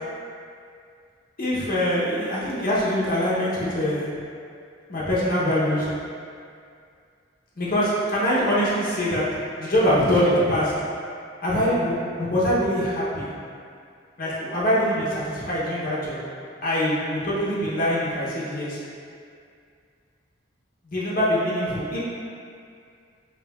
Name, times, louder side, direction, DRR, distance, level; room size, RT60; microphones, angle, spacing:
voice 1, 1.4-4.1 4.9-5.9 7.6-9.2 9.5-10.7 11.4-13.3 14.2-16.2 16.6-18.8 20.9-22.0, equal, 50° left, -8 dB, 0.8 m, -23 dB
5.4 x 3.2 x 2.3 m, 2.3 s
head